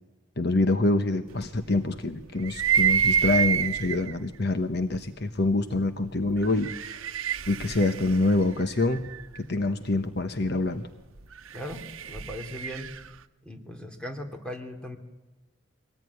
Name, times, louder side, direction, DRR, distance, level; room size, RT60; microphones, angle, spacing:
voice 1, 0.4-7.1 7.5-9.1 9.4-10.8, left 2 dB, 50° left, 9 dB, 1.1 m, -26 dB
sound 1, 2.4-4.1 4.9-5.0 6.4-9.3 11.3-13.1, right 7 dB, 85° right, 1.0 m, -27 dB
voice 2, 11.5-12.9 13.4-15.0, left 1 dB, 5° left, 4 dB, 2.9 m, -38 dB
23.5 x 19.0 x 9.6 m, 1.1 s
head